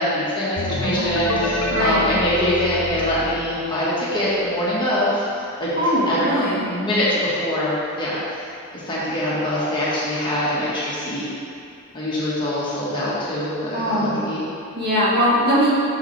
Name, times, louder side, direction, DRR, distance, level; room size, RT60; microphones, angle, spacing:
voice 1, 0.0-5.3 5.6-5.7 6.1-6.2 6.7-8.2 8.7-11.2 11.9-14.4, left 1 dB, 20° left, -9 dB, 1.6 m, -23 dB
sound 1, 0.6-4.3, left 1 dB, 85° left, 0.8 m, -27 dB
voice 2, 5.8-6.6 13.7-14.3 14.8-15.7, equal, 45° right, -8 dB, 1.8 m, -20 dB
7.0 x 6.9 x 3.4 m, 2.4 s
head